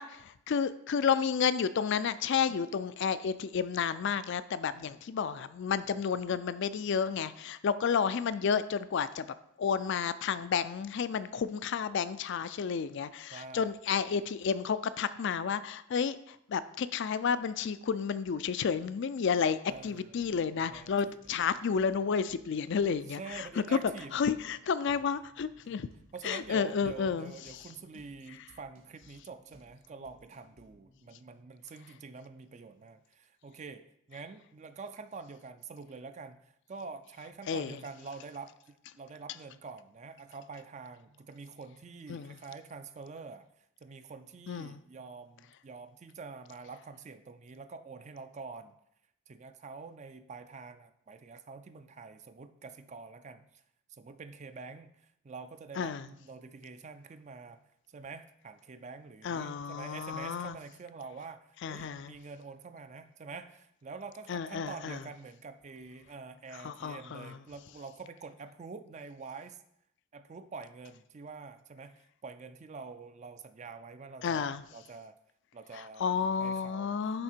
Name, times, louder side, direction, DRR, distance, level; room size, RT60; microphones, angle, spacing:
voice 1, 0.0-23.8 24.1-25.9 26.2-27.6 37.5-37.8 42.1-42.4 44.5-44.8 55.8-56.1 59.2-60.6 61.6-62.1 64.3-65.0 66.5-67.4 74.2-74.6 75.7-77.2, left 6 dB, 55° left, 14 dB, 0.4 m, -31 dB
voice 2, 13.3-13.7 19.7-21.2 23.2-24.1 26.1-43.5 43.8-48.7 49.3-53.6 53.9-69.6 70.1-75.1 75.5-76.9, right 4 dB, 35° right, 10 dB, 0.4 m, -46 dB
sound 1, 19.7-31.1, equal, 85° right, 2.0 m, -63 dB
10.5 x 3.7 x 4.4 m, 0.74 s
head